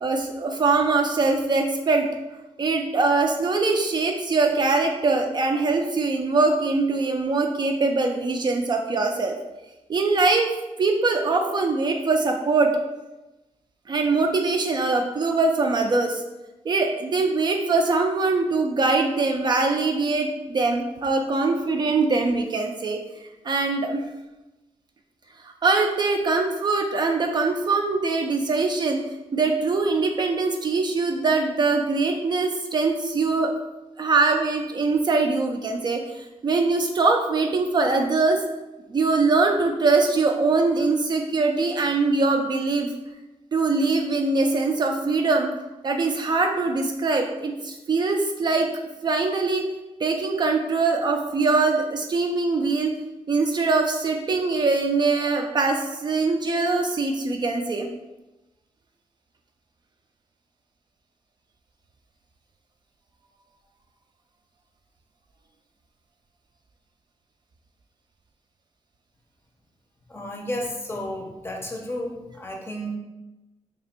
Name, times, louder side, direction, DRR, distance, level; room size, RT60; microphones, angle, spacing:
voice 1, 0.0-2.1 2.6-9.3 9.9-12.7 13.9-16.2 16.7-23.0 23.4-24.0 25.4-29.0 29.3-33.5 34.0-38.4 38.9-42.9 43.5-45.5 45.8-48.7 49.0-49.6 50.0-52.9 53.3-57.9, right 3 dB, 40° right, 3 dB, 0.3 m, -22 dB
voice 2, 70.1-73.0, equal, 20° left, 1 dB, 0.6 m, -32 dB
3.0 x 2.5 x 4.2 m, 1.0 s
wide cardioid pair, 125°, 12 cm